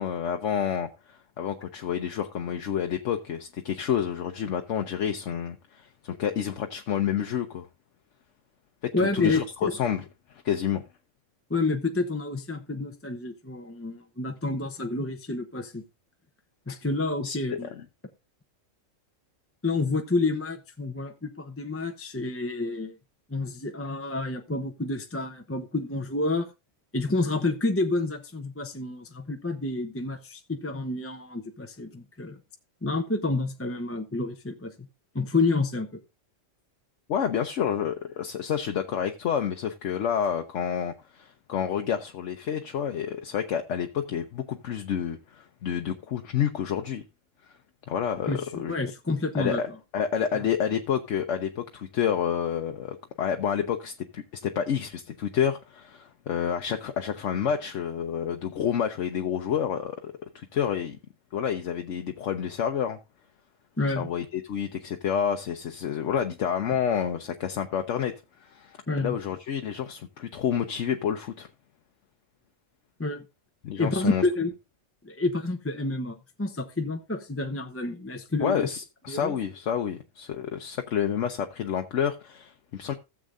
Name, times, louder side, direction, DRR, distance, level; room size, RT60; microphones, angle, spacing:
voice 1, 0.0-7.7 9.0-10.0 10.4-10.8 17.2-17.4 17.6-17.7 37.1-47.0 47.9-48.7 49.3-61.0 61.3-63.0 64.0-68.1 68.4-71.5 73.6-74.3 78.4-82.9, left 8 dB, 70° left, 1.1 m, -29 dB
voice 2, 8.9-9.7 11.5-15.8 16.7-17.7 19.6-23.0 23.3-26.5 26.9-32.4 32.8-34.9 35.1-35.9 48.3-49.6 63.8-64.1 68.9-69.2 73.0-73.2 73.8-74.5 75.0-78.7 79.1-79.3, left 3 dB, 15° left, 0.7 m, -29 dB
16.0 x 7.4 x 2.5 m
omnidirectional pair, 1.3 m